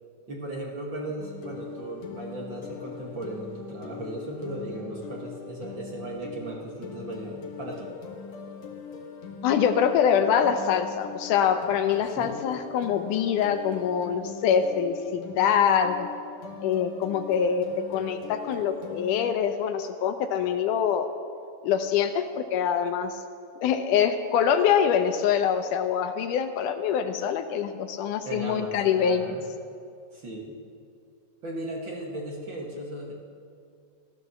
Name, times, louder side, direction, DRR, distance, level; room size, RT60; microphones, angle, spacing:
voice 1, 0.3-7.9 12.2-12.4 28.3-29.4 30.1-30.5 31.4-33.1, right 1 dB, 40° right, -2 dB, 2.1 m, -36 dB
sound 1, 1.2-19.4, left 6 dB, 60° left, 2.4 m, -41 dB
voice 2, 9.4-16.1 16.6-21.1 21.6-23.1 23.6-29.4, left 8 dB, 80° left, 8 dB, 2.2 m, -24 dB
15.5 x 12.5 x 7.0 m, 2.3 s
omnidirectional pair, 3.8 m